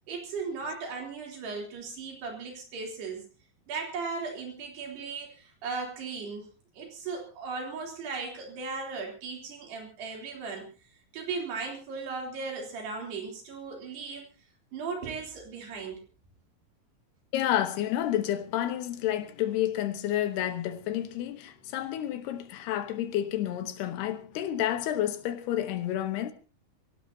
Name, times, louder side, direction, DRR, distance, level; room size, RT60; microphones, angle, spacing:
voice 1, 0.1-3.3 3.7-6.5 6.7-10.7 11.1-14.3 14.7-16.0, right 4 dB, 90° right, 5.6 m, -37 dB
voice 2, 17.3-26.3, left 12 dB, 85° left, 3.3 m, -30 dB
24.5 x 17.5 x 2.8 m
omnidirectional pair, 4.5 m